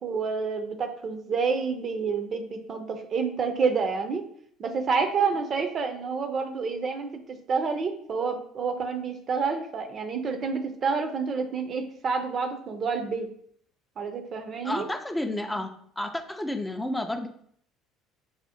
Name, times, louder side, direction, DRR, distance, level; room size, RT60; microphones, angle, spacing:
voice 1, 0.0-4.2 4.6-7.1 7.5-13.3 14.0-14.9, right 5 dB, 45° right, 5 dB, 0.5 m, -28 dB
voice 2, 14.6-15.7 16.0-17.3, left 1 dB, 10° left, 5 dB, 0.4 m, -30 dB
5.4 x 2.0 x 2.8 m, 0.64 s
hypercardioid pair, 60°, 0 cm